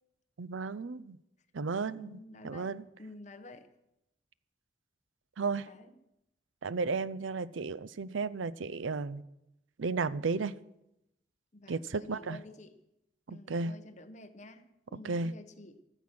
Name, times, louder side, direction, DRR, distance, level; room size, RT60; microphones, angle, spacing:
voice 1, 0.4-1.2 1.5-2.2 2.4-2.8 5.4-5.7 6.6-9.2 9.8-10.5 11.7-12.4 13.3-13.7 15.0-15.3, right 4 dB, 90° right, 0.6 m, -34 dB
voice 2, 1.9-2.7 3.0-3.7 5.7-5.9 11.5-12.8 13.3-15.8, left 2 dB, 40° left, 1.2 m, -50 dB
16.0 x 13.0 x 6.1 m
head